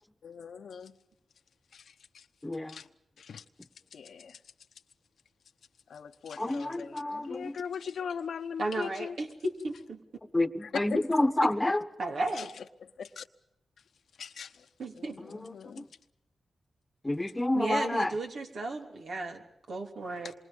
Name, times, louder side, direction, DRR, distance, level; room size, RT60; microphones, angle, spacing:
voice 1, 0.2-1.0 1.7-2.3 2.7-2.9 3.2-3.4 3.9-4.4 5.9-9.2 10.9-11.0 12.3-13.3 14.2-14.7 14.9-15.9 20.2-20.3, left 7 dB, 80° left, 0.9 m, -41 dB
voice 2, 2.4-2.8 6.4-7.6 10.3-11.8 15.2-15.9 17.0-18.1, left 1 dB, 20° left, 1.2 m, -29 dB
voice 3, 8.6-10.0 12.0-12.5 14.8-15.1 17.5-19.4 19.7-20.3, right 2 dB, 80° right, 3.3 m, -34 dB
27.5 x 24.0 x 5.5 m
cardioid pair, 50°, 0 cm